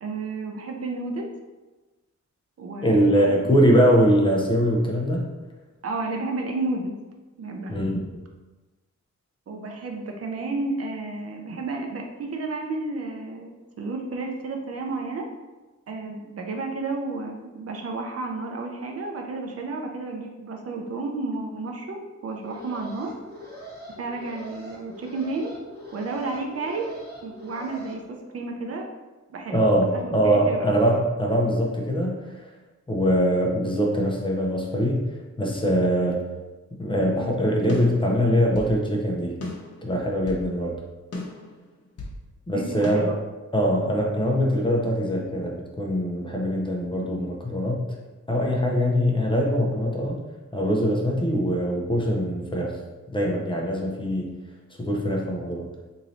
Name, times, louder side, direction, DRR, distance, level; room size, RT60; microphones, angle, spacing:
voice 1, 0.0-1.3 2.6-3.3 5.8-7.0 7.4-7.8 9.5-15.3 15.9-23.2 24.0-25.6 25.9-26.9 27.2-28.9 29.3-30.8 41.4-41.5 42.5-43.2, right 3 dB, 55° right, 2 dB, 0.5 m, -32 dB
voice 2, 2.8-5.3 7.7-8.0 29.5-32.5 32.9-35.1 35.4-36.2 36.8-39.4 39.8-40.8 42.5-43.1 43.5-47.8 48.3-50.2 50.5-52.8 53.1-54.3 54.8-55.7, equal, 15° left, -2 dB, 0.5 m, -22 dB
Alarm, 22.3-27.9, equal, 35° right, 1.0 m, -42 dB
sound 1, 37.7-38.8 39.4-40.5 41.1-42.2 42.8-42.9, left 2 dB, 55° left, 0.8 m, -36 dB
3.0 x 2.7 x 4.0 m, 1.2 s
wide cardioid pair, 135°, 29 cm